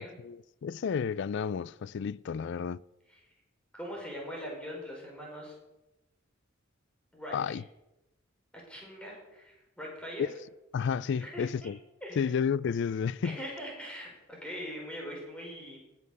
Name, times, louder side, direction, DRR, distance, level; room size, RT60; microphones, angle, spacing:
voice 1, 0.0-2.8 7.3-7.6 10.2-10.3 10.7-11.8 12.2-13.4, left 6 dB, 60° left, 0.4 m, -31 dB
voice 2, 3.7-5.5 7.1-7.6 8.5-10.3 11.2-11.7 12.0-12.3 13.2-15.8, equal, 5° left, 5.0 m, -42 dB
19.0 x 7.2 x 6.7 m
head